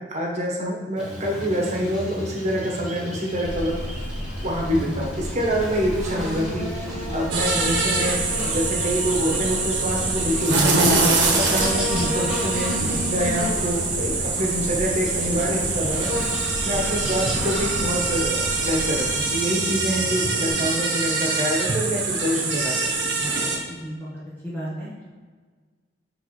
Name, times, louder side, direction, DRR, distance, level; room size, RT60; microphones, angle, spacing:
voice 1, 0.1-4.0 4.4-6.7 7.0-16.2 16.6-22.7 23.2-23.4, equal, 40° right, -1 dB, 1.3 m, -26 dB
Buzz, 1.0-20.5, equal, 5° right, 1.7 m, -33 dB
sound 1, 3.4-19.1, equal, 65° left, 0.7 m, -35 dB
sound 2, 7.3-23.6, right 3 dB, 85° right, 1.2 m, -24 dB
voice 2, 24.4-25.0, equal, 10° left, -7 dB, 1.0 m, -31 dB
10.0 x 3.4 x 3.2 m, 1.5 s
head